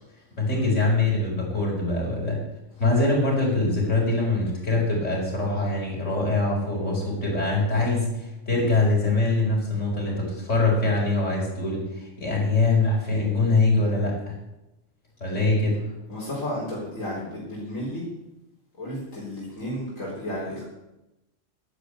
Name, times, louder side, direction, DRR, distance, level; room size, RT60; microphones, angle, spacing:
voice 1, 0.4-2.4 2.8-14.4 15.2-15.8, left 2 dB, 65° left, -2 dB, 5.6 m, -23 dB
voice 2, 16.1-18.0 18.8-20.7, left 1 dB, 85° left, -6 dB, 4.3 m, -32 dB
11.5 x 10.5 x 8.3 m, 0.94 s
omnidirectional pair, 1.3 m